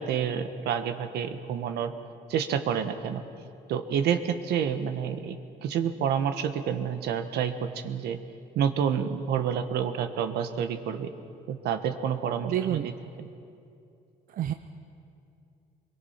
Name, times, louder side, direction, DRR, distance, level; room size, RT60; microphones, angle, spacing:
voice 1, 0.0-1.9 2.3-3.2 3.7-5.4 5.6-8.2 8.5-11.1 11.5-12.9 13.2-13.3, right 8 dB, 75° right, 8 dB, 1.4 m, -29 dB
voice 2, 12.4-12.9 14.3-14.5, right 11 dB, 55° right, 8 dB, 0.8 m, -28 dB
24.0 x 23.0 x 5.8 m, 2.6 s
cardioid pair, 110°, 17 cm